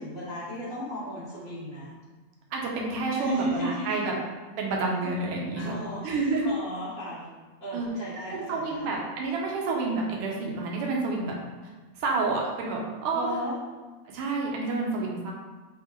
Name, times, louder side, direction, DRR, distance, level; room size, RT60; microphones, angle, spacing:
voice 1, 0.0-1.9 3.1-4.2 5.0-5.1 5.5-6.1 6.4-8.8 13.1-13.6, equal, 90° right, -12 dB, 0.4 m, -35 dB
voice 2, 2.5-4.1 4.6-5.8 6.0-6.5 7.7-7.9 8.3-11.3 11.9-13.3 14.1-15.3, right 3 dB, 75° right, -2 dB, 1.4 m, -29 dB
5.8 x 2.9 x 3.0 m, 1.3 s
omnidirectional pair, 3.4 m